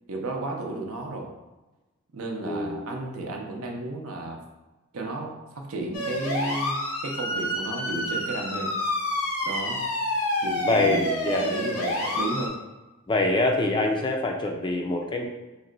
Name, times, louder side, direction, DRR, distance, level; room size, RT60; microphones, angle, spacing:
voice 1, 0.1-1.3 2.1-4.4 4.9-8.7 9.4-9.9 10.4-12.6, right 2 dB, 70° right, 1 dB, 0.6 m, -33 dB
voice 2, 2.5-2.9 10.6-11.5 13.1-15.2, left 2 dB, 20° left, 2 dB, 0.4 m, -25 dB
sound 1, 5.9-12.5, left 1 dB, 90° left, 0.8 m, -28 dB
4.1 x 2.2 x 3.7 m, 1.1 s
head